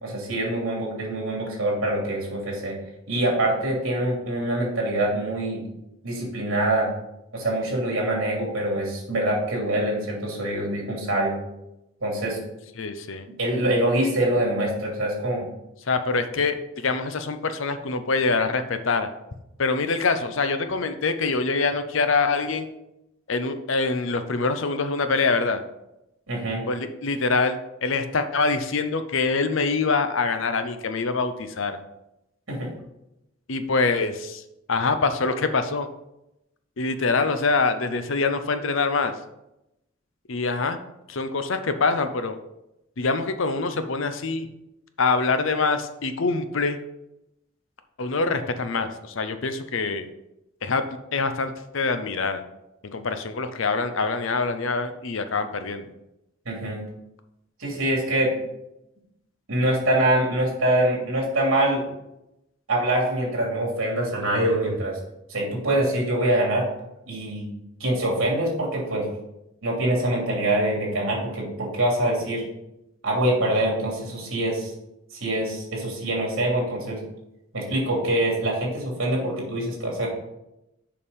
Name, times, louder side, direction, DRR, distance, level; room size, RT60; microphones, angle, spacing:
voice 1, 0.0-2.8 3.1-5.6 6.0-6.9 7.3-11.4 12.0-12.4 13.4-15.5 26.3-26.6 32.5-32.7 56.4-56.8 57.6-58.3 59.5-61.8 62.7-65.0 65.3-66.7 67.1-67.5 67.8-69.1 69.6-72.4 73.0-74.7 75.2-77.0 77.5-80.1, right 1 dB, 70° right, -2 dB, 3.0 m, -24 dB
voice 2, 12.8-13.3 15.9-19.1 19.6-22.7 23.3-25.6 26.7-31.8 33.5-34.4 34.7-35.9 36.8-39.1 40.3-40.8 41.1-42.4 43.0-44.5 45.0-46.8 48.0-50.1 50.6-50.8 51.1-52.4 52.9-55.9, left 4 dB, 65° left, 9 dB, 0.7 m, -25 dB
6.9 x 5.3 x 5.3 m, 0.88 s
head